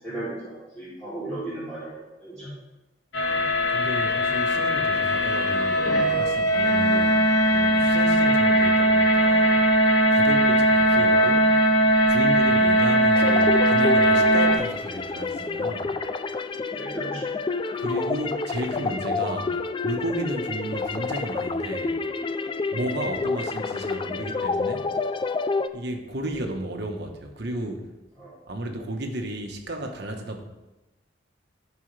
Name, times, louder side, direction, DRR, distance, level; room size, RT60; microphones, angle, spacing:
voice 1, 0.0-2.5 6.6-6.7 10.4-10.5 16.7-17.2 28.2-28.3, right 2 dB, 5° left, -14 dB, 3.3 m, -36 dB
sound 1, 3.1-14.6, equal, 70° left, 2.2 m, -20 dB
voice 2, 3.7-9.6 10.1-11.5 12.1-15.9 17.7-19.5 19.8-22.0 22.7-24.9 25.7-27.9 28.5-30.4, right 1 dB, 60° right, 3 dB, 1.3 m, -33 dB
sound 2, 13.1-25.7, left 4 dB, 25° left, 0.4 m, -29 dB
15.0 x 5.4 x 3.4 m, 1.1 s
head